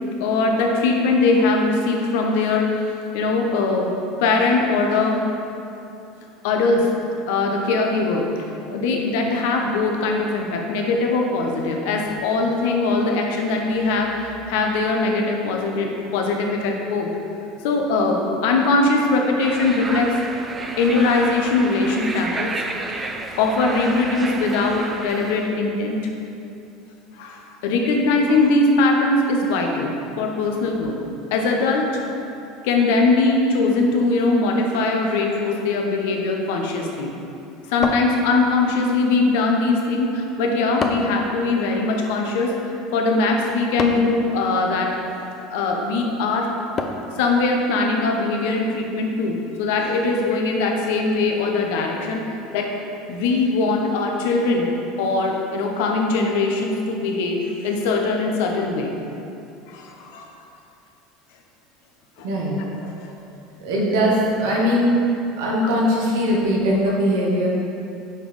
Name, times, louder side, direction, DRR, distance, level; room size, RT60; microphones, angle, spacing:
voice 1, 0.2-2.7 3.1-3.9 4.2-5.2 6.4-6.9 7.3-17.1 17.6-20.2 20.8-22.5 22.9-26.0 27.1-31.0 31.3-32.0 32.6-37.1 37.7-42.5 42.9-45.0 45.5-46.5 47.2-52.7 53.1-54.7 55.0-58.9 59.7-60.4 62.2-62.3 62.8-63.1, left 3 dB, 75° left, 2 dB, 0.9 m, -21 dB
sound 1, 19.4-25.5, right 3 dB, 25° right, 0.6 m, -31 dB
sound 2, 37.8-38.7 40.8-41.3 43.8-44.2 46.8-47.2, left 4 dB, 35° left, 0.6 m, -27 dB
voice 2, 62.2-62.6 63.6-64.9 65.4-67.5, equal, 75° right, -3 dB, 1.5 m, -20 dB
5.8 x 5.1 x 4.9 m, 2.7 s
hypercardioid pair, 85°, 0 cm